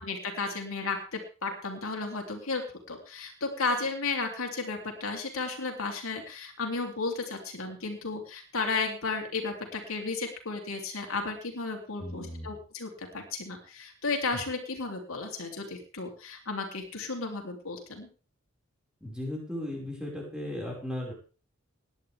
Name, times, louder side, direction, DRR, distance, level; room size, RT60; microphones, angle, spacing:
voice 1, 0.0-18.1, left 3 dB, 80° left, 2 dB, 3.2 m, -34 dB
voice 2, 12.0-12.6 14.3-14.4 19.0-21.1, left 1 dB, 5° right, -3 dB, 5.3 m, -36 dB
18.5 x 11.5 x 3.5 m, 0.36 s
head